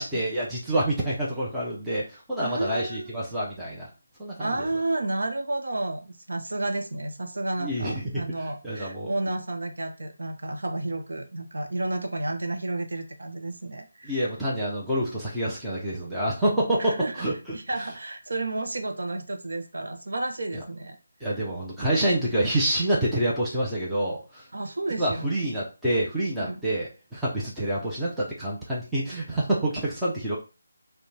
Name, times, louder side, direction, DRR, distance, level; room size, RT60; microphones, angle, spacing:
voice 1, 0.0-3.9 4.2-4.7 7.6-8.2 8.6-9.1 14.0-17.6 21.2-24.5 25.0-30.4, right 1 dB, ahead, -8 dB, 0.5 m, -27 dB
voice 2, 2.4-3.1 4.4-14.2 16.8-17.1 17.5-21.0 21.2-21.3 24.5-25.5 26.4-26.6, right 2 dB, 70° right, 5 dB, 0.7 m, -31 dB
5.3 x 2.1 x 3.2 m, 0.31 s
figure-of-eight pair, 180°, 0 cm